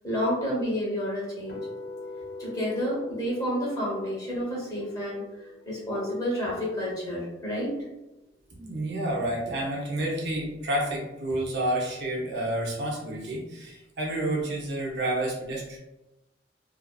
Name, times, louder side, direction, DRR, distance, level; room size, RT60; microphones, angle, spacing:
voice 1, 0.0-1.6 2.4-5.2 5.7-7.8, equal, 20° left, -5 dB, 0.7 m, -30 dB
sound 1, 1.5-7.6, left 3 dB, 60° left, 0.4 m, -43 dB
voice 2, 8.6-15.8, right 1 dB, 65° right, -3 dB, 0.7 m, -29 dB
2.4 x 2.4 x 2.3 m, 0.97 s
head